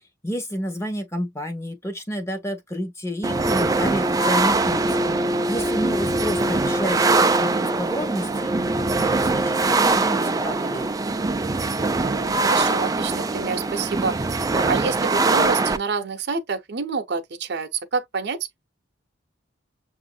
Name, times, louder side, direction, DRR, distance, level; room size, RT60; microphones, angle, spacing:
voice 1, 0.2-4.9 5.5-7.1 7.4-10.9, equal, 15° left, 0.9 m, -30 dB
sound 1, 3.2-15.8, right 3 dB, 20° right, 0.4 m, -22 dB
voice 2, 12.0-18.4, right 5 dB, 60° right, 0.7 m, -28 dB
6.7 x 2.6 x 2.2 m
head